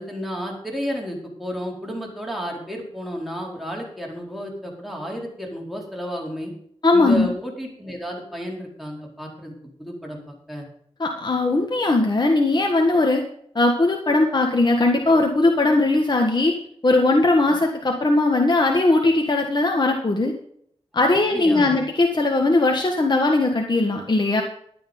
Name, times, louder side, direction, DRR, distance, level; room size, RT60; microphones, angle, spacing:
voice 1, 0.0-6.5 6.9-10.7 21.0-21.7, equal, ahead, -1 dB, 4.6 m, -32 dB
voice 2, 6.8-7.3 11.0-13.2 13.6-16.5 16.8-20.3 20.9-24.4, left 2 dB, 45° left, 2 dB, 1.8 m, -19 dB
12.0 x 9.5 x 5.4 m, 0.66 s
wide cardioid pair, 70°, 11 cm